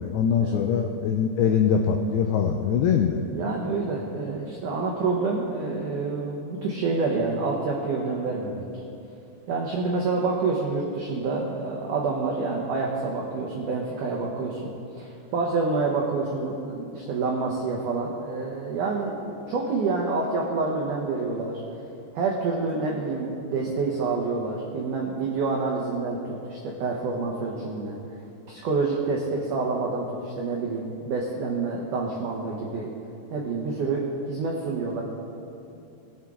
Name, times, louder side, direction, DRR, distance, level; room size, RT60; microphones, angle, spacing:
voice 1, 0.0-3.2, left 7 dB, 90° left, 3 dB, 2.2 m, -23 dB
voice 2, 3.3-8.6 9.5-21.6 22.1-28.0 28.5-32.9 33.3-35.0, right 3 dB, 85° right, -1 dB, 1.8 m, -28 dB
20.5 x 7.2 x 3.7 m, 2.7 s
omnidirectional pair, 5.1 m